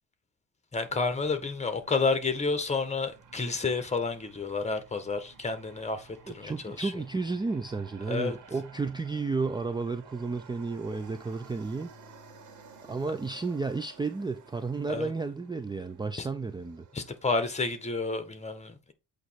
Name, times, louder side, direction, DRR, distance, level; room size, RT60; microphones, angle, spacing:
voice 1, 0.7-6.9 8.1-8.3 14.9-15.1 16.2-16.3 16.9-18.9, left 4 dB, 20° left, 1.6 m, -30 dB
Aircraft, 0.9-18.3, right 4 dB, 80° right, 1.9 m, -54 dB
voice 2, 6.3-11.9 12.9-16.9, right 4 dB, 15° right, 0.5 m, -32 dB
8.1 x 3.2 x 4.7 m
cardioid pair, 90°, 30 cm